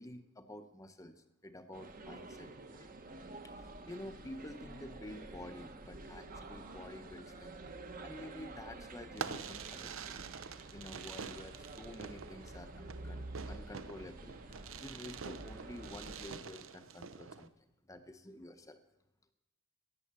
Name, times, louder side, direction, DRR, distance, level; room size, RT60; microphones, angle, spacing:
voice 1, 0.0-3.0 3.4-7.6 8.0-10.2 10.7-18.8, left 1 dB, 15° left, 9 dB, 0.7 m, -50 dB
sound 1, 1.7-16.3, right 2 dB, 45° right, 1.2 m, -49 dB
Fireworks, 9.1-17.5, right 6 dB, 85° right, 0.7 m, -46 dB
14.0 x 9.6 x 6.9 m, 0.93 s
head